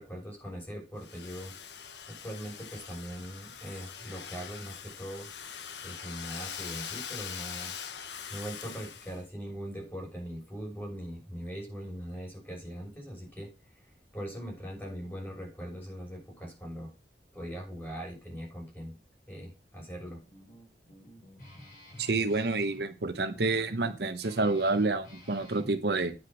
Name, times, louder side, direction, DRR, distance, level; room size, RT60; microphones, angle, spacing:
voice 1, 0.0-1.5 2.1-5.3 5.8-7.7 8.3-16.9 17.3-19.0 19.3-20.2, equal, 10° left, -1 dB, 6.5 m, -41 dB
Domestic sounds home sounds, 1.0-9.2, left 7 dB, 80° left, 1.2 m, -42 dB
Guitar, 20.0-25.7, left 1 dB, 45° left, 5.6 m, -51 dB
voice 2, 22.0-26.1, right 3 dB, 65° right, 9 dB, 1.0 m, -28 dB
9.7 x 6.5 x 6.1 m, 0.29 s
head